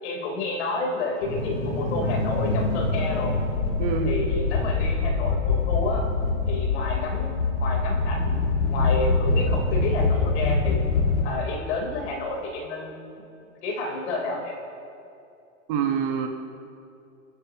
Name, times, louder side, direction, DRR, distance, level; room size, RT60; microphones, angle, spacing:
voice 1, 0.0-3.4 4.0-6.1 6.5-8.4 8.7-10.9 11.2-13.2 13.5-14.6, left 3 dB, 55° left, 0 dB, 3.7 m, -30 dB
sound 1, 1.2-11.2, left 3 dB, 80° left, 2.5 m, -24 dB
voice 2, 3.8-4.1 15.7-16.3, right 7 dB, 40° right, 4 dB, 1.2 m, -25 dB
25.5 x 9.8 x 2.9 m, 2.6 s
hypercardioid pair, 145°, 41 cm